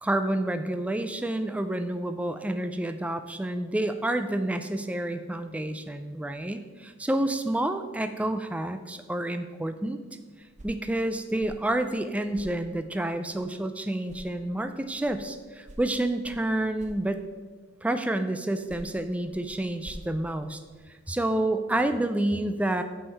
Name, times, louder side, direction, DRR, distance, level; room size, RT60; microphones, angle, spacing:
voice 1, 0.0-10.0 10.6-17.2 17.8-20.6 21.1-22.8, right 1 dB, 5° right, 8 dB, 0.3 m, -29 dB
sound 1, 10.4-13.8 14.0-17.6 18.4-21.1, equal, 35° right, 0.8 m, -50 dB
6.4 x 6.1 x 4.6 m, 1.4 s
head